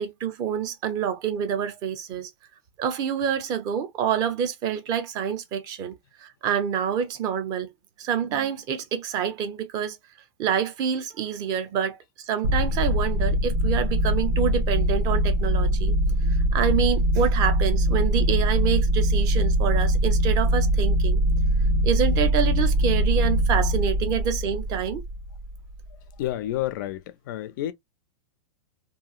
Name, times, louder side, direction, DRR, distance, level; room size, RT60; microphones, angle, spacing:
voice 1, 0.0-2.3 2.8-7.7 8.0-10.0 10.4-12.0 12.3-16.0 16.5-21.2 21.8-25.0, right 8 dB, 20° right, 0.5 m, -27 dB
sound 1, 12.4-25.8, equal, 85° right, 1.2 m, -22 dB
voice 2, 26.2-27.7, left 13 dB, 40° left, 0.4 m, -30 dB
2.9 x 2.7 x 2.3 m
supercardioid pair, 165°, 17 cm